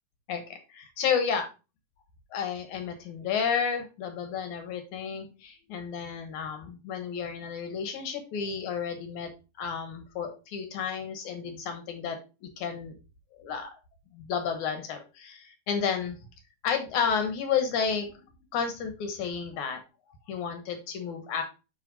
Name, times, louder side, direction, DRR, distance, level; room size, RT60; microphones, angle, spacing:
voice 1, 0.3-1.5 2.3-9.3 9.6-12.9 13.4-13.7 14.1-16.2 16.6-18.1 18.5-19.8 20.3-21.4, left 6 dB, 65° left, 7 dB, 2.3 m, -31 dB
9.1 x 4.2 x 4.0 m, 0.30 s
omnidirectional pair, 4.4 m